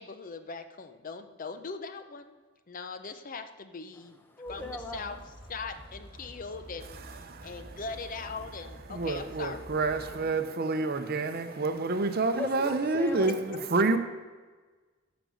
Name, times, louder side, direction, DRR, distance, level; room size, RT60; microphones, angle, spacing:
voice 1, 0.0-2.4 2.7-4.2 4.5-5.2 5.5-9.6, left 4 dB, 45° left, 0.6 m, -40 dB
voice 2, 3.9-5.2 6.2-6.3 9.8-10.2 12.3-14.0, left 2 dB, 10° left, 0.9 m, -40 dB
sound 1, 4.4-10.2, equal, 25° right, 2.4 m, -48 dB
voice 3, 7.3-7.8 8.9-14.0, right 3 dB, 50° right, 0.7 m, -28 dB
13.0 x 5.2 x 6.5 m
head